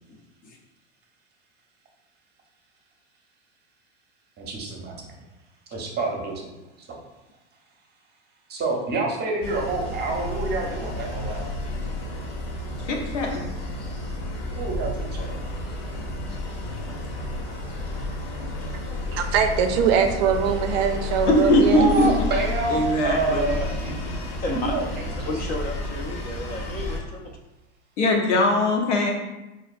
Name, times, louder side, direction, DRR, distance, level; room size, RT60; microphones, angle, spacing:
voice 1, 0.1-0.6 15.7-16.4 24.4-24.7 25.3-27.4, left 1 dB, 25° left, 1 dB, 0.4 m, -33 dB
voice 2, 4.4-5.1 5.7-6.5 6.8-7.0 8.5-11.6 14.6-15.5 21.7-23.9 24.5-24.9 25.2-25.3, right 3 dB, 30° right, 0 dB, 0.7 m, -28 dB
sound 1, 9.4-27.0, left 2 dB, 45° left, 0.8 m, -31 dB
voice 3, 12.9-13.5 21.3-22.1 22.7-23.5 28.0-29.1, left 1 dB, 80° left, 0 dB, 0.9 m, -21 dB
voice 4, 19.1-21.8, right 7 dB, 60° right, 6 dB, 0.5 m, -22 dB
4.2 x 2.5 x 2.4 m, 1.0 s
supercardioid pair, 120°, 35 cm